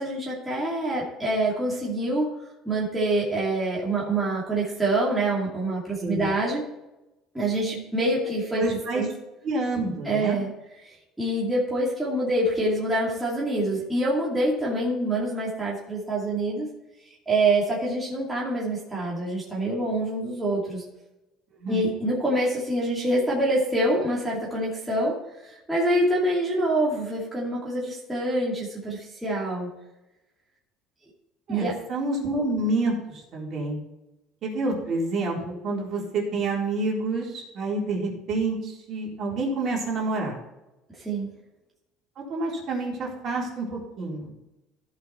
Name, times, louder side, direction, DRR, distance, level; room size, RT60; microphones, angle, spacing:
voice 1, 0.0-2.3 2.6-6.6 7.3-9.1 10.0-10.5 10.8-16.7 17.3-20.8 21.7-25.1 25.4-29.7 31.5-31.7 41.0-41.3, right 1 dB, 5° right, -6 dB, 2.5 m, -26 dB
voice 2, 6.0-6.3 8.6-9.1 9.4-10.4 21.6-21.9 31.5-33.8 34.4-40.4 42.3-44.3, right 2 dB, 45° right, -3 dB, 3.8 m, -28 dB
15.5 x 5.9 x 4.4 m, 0.96 s
cardioid pair, 150°, 0 cm